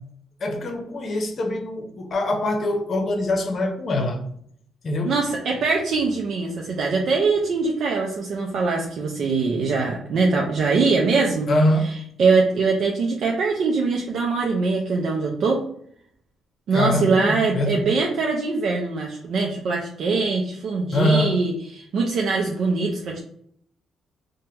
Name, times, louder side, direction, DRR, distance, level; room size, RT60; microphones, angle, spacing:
voice 1, 0.4-4.2 4.8-5.2 11.5-12.0 16.7-17.9 20.9-21.4, left 1 dB, 50° left, 0.7 m, -23 dB
voice 2, 5.0-11.5 12.2-15.7 16.7-23.2, right 4 dB, 65° right, 0.5 m, -22 dB
3.3 x 2.1 x 2.8 m
cardioid pair, 90°, 0 cm